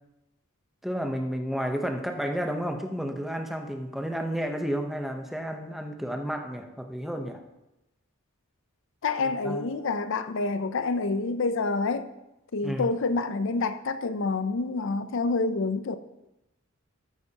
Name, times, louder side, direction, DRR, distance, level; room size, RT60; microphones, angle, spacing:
voice 1, 0.8-7.4 9.2-9.7 12.6-12.9, equal, ahead, 3 dB, 0.8 m, -31 dB
voice 2, 9.0-12.1 12.5-16.0, left 3 dB, 65° left, 12 dB, 0.5 m, -27 dB
13.5 x 8.9 x 2.9 m, 0.94 s
head